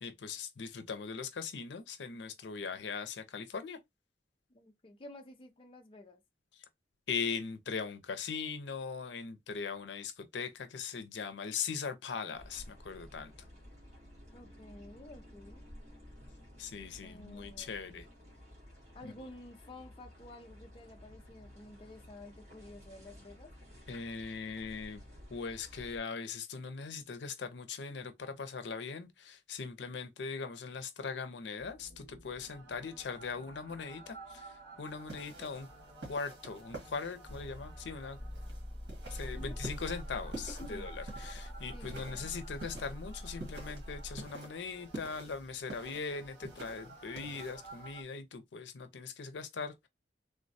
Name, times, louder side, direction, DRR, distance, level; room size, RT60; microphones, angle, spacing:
voice 1, 0.0-3.8 7.1-13.3 16.6-18.1 19.0-19.1 23.9-25.0 25.3-35.7 36.1-38.2 39.1-49.9, left 5 dB, 80° left, 0.5 m, -40 dB
voice 2, 4.5-6.2 14.3-15.6 17.0-18.0 18.9-23.5 39.3-39.6 40.6-40.9 41.7-42.3, left 1 dB, 30° left, 0.4 m, -52 dB
sound 1, 12.3-26.0, equal, 40° right, 1.6 m, -54 dB
sound 2, 31.6-48.0, equal, 55° right, 1.6 m, -47 dB
sound 3, 34.9-48.0, right 2 dB, 75° right, 1.4 m, -50 dB
3.4 x 2.2 x 2.6 m
head